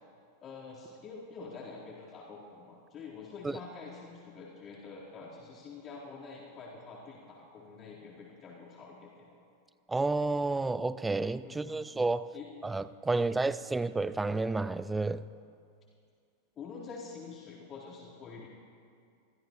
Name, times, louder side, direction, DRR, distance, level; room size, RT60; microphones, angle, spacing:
voice 1, 0.4-9.3 11.4-11.9 12.3-12.5 13.1-13.8 16.5-18.5, left 4 dB, 25° left, 4.3 m, -47 dB
voice 2, 9.9-12.3 12.6-15.3, right 3 dB, 10° right, 0.4 m, -30 dB
24.5 x 15.5 x 3.2 m
figure-of-eight pair, 90°, 0 cm